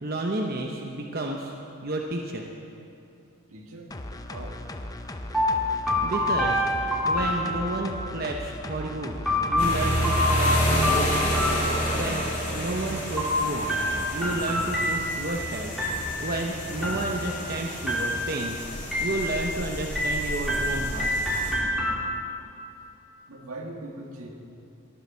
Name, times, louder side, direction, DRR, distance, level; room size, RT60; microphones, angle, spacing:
voice 1, 0.0-1.5 1.8-2.4 6.0-6.6 7.0-9.2 9.5-11.3 11.9-12.3 12.5-13.7 14.1-15.7 16.2-18.6 19.0-21.1, right 2 dB, 45° right, 0 dB, 0.8 m, -31 dB
voice 2, 3.5-3.9 4.3-4.6 23.3-24.3, right 2 dB, 80° right, 1 dB, 1.9 m, -40 dB
sound 1, 3.9-10.2 10.6-10.7, left 1 dB, 15° left, 0.5 m, -38 dB
sound 2, 5.3-8.1 9.2-12.3 13.2-15.4 15.8-16.4 16.8-17.5 17.9-18.5 18.9-19.6 19.9-22.4, left 1 dB, ahead, 2.6 m, -27 dB
sound 3, 9.6-21.5, equal, 35° left, 2.9 m, -29 dB
15.0 x 10.0 x 6.3 m, 2.6 s
head